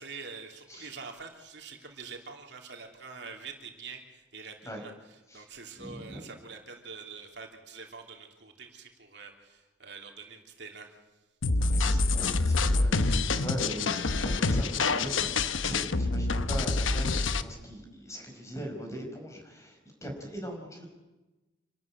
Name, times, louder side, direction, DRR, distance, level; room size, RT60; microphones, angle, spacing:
voice 1, 0.0-4.9 5.3-10.9, right 5 dB, 60° right, 2 dB, 3.1 m, -45 dB
voice 2, 5.8-6.2 11.6-20.9, equal, 15° left, 2 dB, 5.1 m, -40 dB
sound 1, 11.4-17.4, left 3 dB, 85° left, 1.0 m, -26 dB
27.0 x 13.0 x 8.9 m, 1.1 s
head